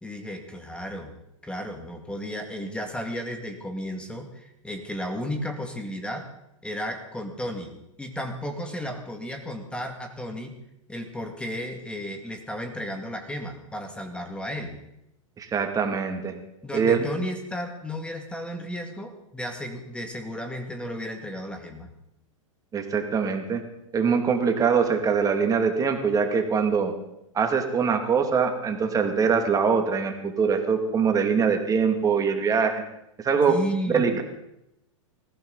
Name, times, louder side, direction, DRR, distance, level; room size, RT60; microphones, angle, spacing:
voice 1, 0.0-1.1 1.4-6.3 6.6-7.7 8.0-10.6 10.9-14.8 16.6-21.9 33.5-34.2, equal, 5° left, 5 dB, 2.1 m, -33 dB
voice 2, 15.4-16.3 16.7-17.0 22.7-23.6 23.9-26.9 27.3-32.9 33.2-33.5 33.9-34.2, right 6 dB, 20° right, 5 dB, 2.4 m, -23 dB
20.0 x 15.5 x 4.1 m, 0.82 s
hypercardioid pair, 115°, 17 cm